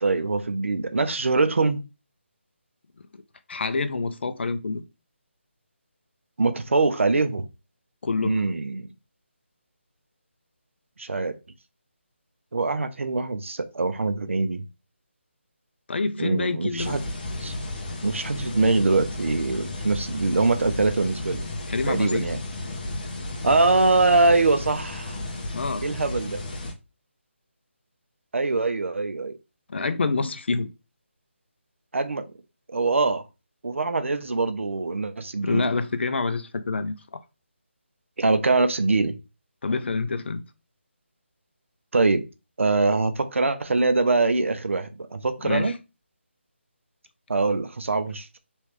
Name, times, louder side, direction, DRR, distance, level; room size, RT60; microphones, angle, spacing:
voice 1, 0.0-1.8 6.4-7.4 8.2-8.9 11.0-11.3 12.5-14.6 16.2-17.0 17.4-17.5 18.0-21.4 21.9-22.4 23.4-25.2 25.8-26.4 28.3-29.3 31.9-32.3 32.7-33.2 33.6-35.7 38.2-39.2 41.9-42.3 42.6-45.7 47.3-48.4, right 3 dB, 75° right, 0.6 m, -23 dB
voice 2, 3.5-4.8 8.0-8.5 15.9-17.0 21.7-22.3 25.5-25.9 29.7-30.7 35.4-37.2 39.6-40.4 45.4-45.8, left 3 dB, 60° left, 0.5 m, -27 dB
sound 1, 16.8-26.7, left 2 dB, 40° left, 0.8 m, -33 dB
3.2 x 3.1 x 3.1 m
figure-of-eight pair, 160°, 7 cm